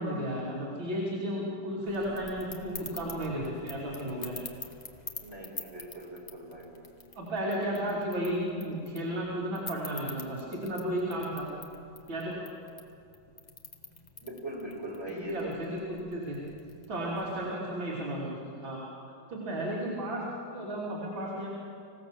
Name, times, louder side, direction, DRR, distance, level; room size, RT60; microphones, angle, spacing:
voice 1, 0.0-4.4 7.2-11.5 12.1-12.3 15.2-16.4 16.9-18.9 19.3-21.5, right 1 dB, 65° right, -6 dB, 3.8 m, -33 dB
sound 1, 1.8-17.5, left 3 dB, 25° left, 1.1 m, -47 dB
voice 2, 5.2-6.7 14.2-16.0, right 1 dB, 30° right, -3 dB, 5.5 m, -41 dB
26.0 x 16.5 x 7.1 m, 2.6 s
omnidirectional pair, 2.3 m